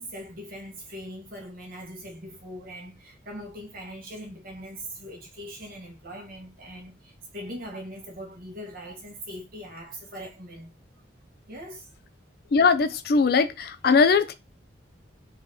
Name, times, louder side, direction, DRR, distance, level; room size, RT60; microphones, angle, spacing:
voice 1, 0.0-10.7 11.5-11.9 12.4-12.5, equal, 45° right, 1.5 m, -41 dB
voice 2, 12.5-14.3, left 4 dB, 50° left, 0.4 m, -20 dB
4.1 x 2.9 x 3.5 m
head